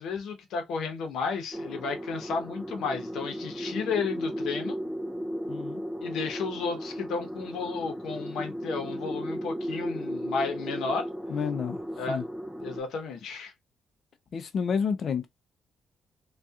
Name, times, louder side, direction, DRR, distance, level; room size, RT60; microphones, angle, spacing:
voice 1, 0.0-4.8 6.0-11.1 12.0-12.2 12.6-13.5, left 5 dB, 80° left, 0.8 m, -33 dB
sound 1, 1.5-12.8, equal, 5° right, 0.5 m, -35 dB
voice 2, 5.5-5.8 11.3-11.8 12.1-12.2 14.3-15.3, left 6 dB, 55° left, 0.5 m, -29 dB
2.6 x 2.3 x 2.3 m
cardioid pair, 90°, 0 cm